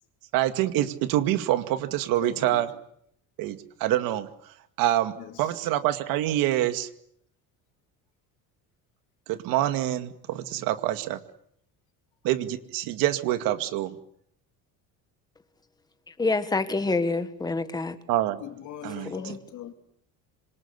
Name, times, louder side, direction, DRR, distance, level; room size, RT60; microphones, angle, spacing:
voice 1, 0.3-2.7 3.4-6.9 9.3-11.2 12.2-14.0 18.1-18.4 18.8-19.3, right 13 dB, 75° right, 2.2 m, -26 dB
voice 2, 2.2-2.6 5.2-5.5 18.4-19.7, left 11 dB, 55° left, 3.2 m, -41 dB
voice 3, 16.1-18.0 19.1-19.4, left 3 dB, 10° left, 1.6 m, -27 dB
26.5 x 26.5 x 8.2 m
cardioid pair, 175°, 35 cm